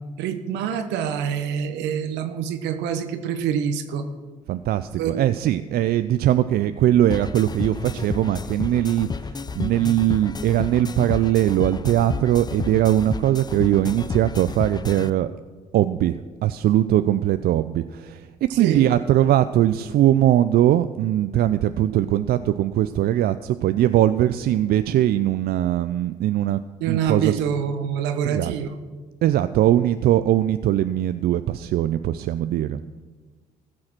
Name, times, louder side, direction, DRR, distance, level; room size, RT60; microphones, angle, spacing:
voice 1, 0.2-4.1 5.0-5.1 18.5-18.9 26.8-28.7, right 8 dB, 75° right, 9 dB, 1.0 m, -26 dB
voice 2, 4.5-15.3 15.7-27.4 28.2-28.5 29.2-32.8, right 12 dB, 60° right, 12 dB, 0.4 m, -21 dB
sound 1, 7.1-15.1, left 4 dB, 25° left, 0.5 m, -31 dB
15.0 x 6.4 x 6.1 m, 1.4 s
hypercardioid pair, 55°, 18 cm